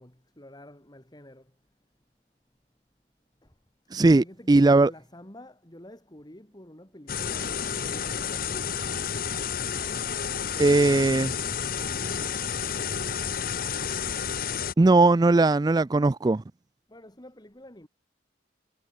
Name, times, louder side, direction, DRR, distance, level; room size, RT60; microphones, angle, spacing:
voice 1, 0.0-1.5 4.1-8.8 10.6-11.2 11.7-13.0 16.9-17.9, left 1 dB, 25° left, 2.8 m, -48 dB
voice 2, 3.9-4.9 10.6-11.3 14.8-16.4, right 2 dB, 20° right, 0.4 m, -19 dB
sound 1, 7.1-14.7, left 7 dB, 55° left, 1.1 m, -30 dB
head